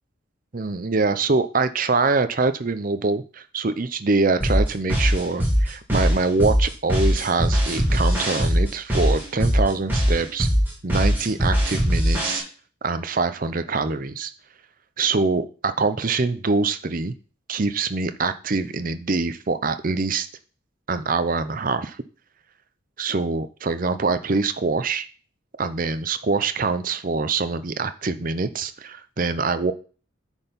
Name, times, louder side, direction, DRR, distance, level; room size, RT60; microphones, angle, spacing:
voice 1, 0.5-10.5 10.8-12.4 12.8-14.3 15.0-17.1 17.5-20.3 20.9-22.0 23.0-25.1 25.6-29.7, right 3 dB, 40° right, 11 dB, 0.6 m, -24 dB
sound 1, 4.4-12.4, equal, 10° right, 2.7 m, -21 dB
9.6 x 4.5 x 5.2 m, 0.39 s
head